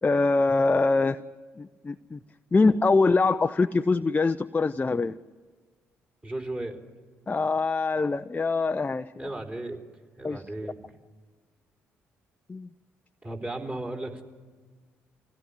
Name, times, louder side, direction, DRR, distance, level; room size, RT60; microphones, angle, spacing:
voice 1, 0.0-1.2 1.6-2.2 2.5-5.2 7.3-9.3 10.2-10.4 12.5-12.7, left 3 dB, 25° left, 9 dB, 0.6 m, -24 dB
voice 2, 6.2-6.8 9.2-9.8 10.2-10.9 13.2-14.2, right 1 dB, 25° right, 0 dB, 4.1 m, -35 dB
26.0 x 17.0 x 9.8 m, 1.5 s
hypercardioid pair, 45°, 7 cm